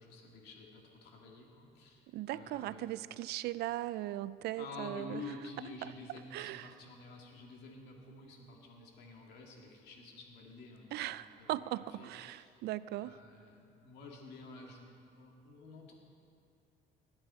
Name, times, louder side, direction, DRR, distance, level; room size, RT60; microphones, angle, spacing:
voice 1, 0.0-3.0 4.6-12.6 13.0-14.9 15.2-15.9, left 3 dB, 80° left, 0 dB, 2.4 m, -50 dB
voice 2, 2.1-5.2 5.8-5.9 6.3-6.7 10.9-13.2, right 15 dB, 75° right, 16 dB, 0.4 m, -39 dB
19.5 x 8.8 x 4.4 m, 2.5 s
cardioid pair, 110°, 17 cm